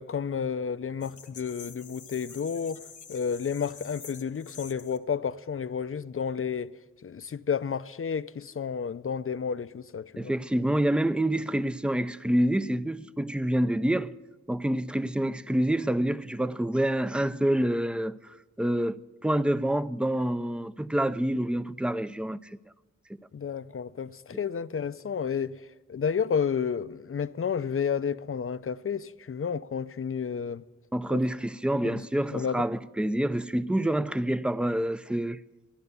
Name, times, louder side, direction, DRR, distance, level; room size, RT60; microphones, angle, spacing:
voice 1, 0.0-6.8 7.0-10.4 23.3-30.6 31.1-31.2 31.8-32.6, left 6 dB, 50° left, 0.5 m, -31 dB
sound 1, 1.0-5.0, left 6 dB, 85° left, 1.0 m, -47 dB
voice 2, 10.2-14.1 14.5-18.2 18.6-22.4 30.9-35.4, right 1 dB, 5° right, 0.4 m, -27 dB
14.0 x 11.0 x 6.8 m
wide cardioid pair, 55°, 29 cm